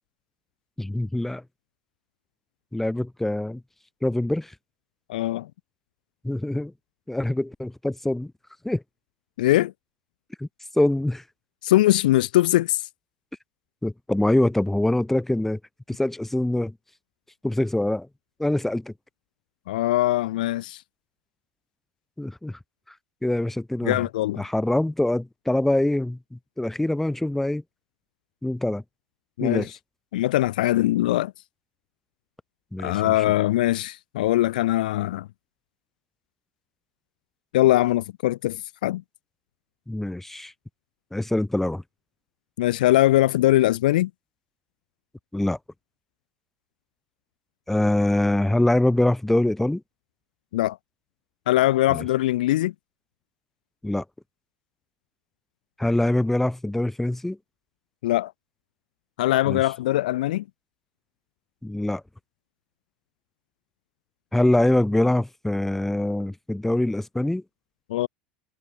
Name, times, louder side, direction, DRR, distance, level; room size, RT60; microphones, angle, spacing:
voice 1, 0.8-1.4 2.7-3.6 4.0-4.5 6.2-6.7 7.1-8.3 8.6-8.8 10.4-10.5 10.7-11.2 13.8-15.6 15.9-16.7 17.4-18.1 18.4-18.9 22.2-22.6 23.2-24.0 24.4-27.6 28.4-28.8 29.4-29.7 32.7-33.1 39.9-40.5 41.1-41.8 45.3-45.6 47.7-49.8 51.9-52.0 53.8-54.0 55.8-57.4 59.5-59.6 61.6-62.0 64.3-67.4, left 1 dB, 5° left, 2.8 m, -24 dB
voice 2, 5.1-5.5 9.4-9.7 11.6-12.9 19.7-20.8 23.8-24.4 29.4-29.7 30.1-31.3 32.8-35.3 37.5-39.0 42.6-44.1 50.5-50.8 51.5-52.7 58.0-58.3 59.2-60.4 67.9-68.1, left 15 dB, 75° left, 2.7 m, -21 dB
hypercardioid pair, 80°, 5 cm